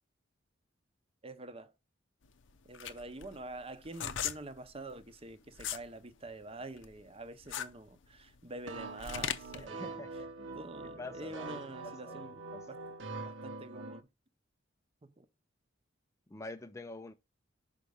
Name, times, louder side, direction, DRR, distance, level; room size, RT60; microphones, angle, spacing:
voice 1, 1.2-1.7 2.7-10.0 10.5-12.8 13.2-14.1 15.0-15.3, right 2 dB, 30° right, 0.8 m, -46 dB
sound 1, 2.2-5.9 6.3-9.7, left 9 dB, 70° left, 0.6 m, -39 dB
sound 2, 8.7-14.0, right 3 dB, 70° right, 0.9 m, -44 dB
voice 2, 9.6-10.5 11.0-12.2 12.5-12.7 16.3-17.1, left 2 dB, 15° left, 0.4 m, -47 dB
5.8 x 5.3 x 4.9 m
head